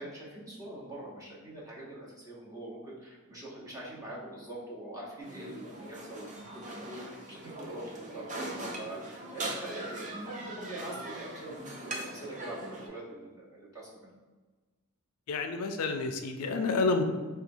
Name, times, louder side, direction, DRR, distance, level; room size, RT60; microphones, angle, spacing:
voice 1, 0.0-14.1, right 1 dB, 15° right, -6 dB, 0.8 m, -43 dB
sound 1, 5.2-12.9, right 1 dB, 35° right, 0.5 m, -41 dB
voice 2, 15.3-17.0, left 3 dB, 75° left, 6 dB, 0.3 m, -29 dB
4.2 x 2.3 x 2.6 m, 1.3 s
head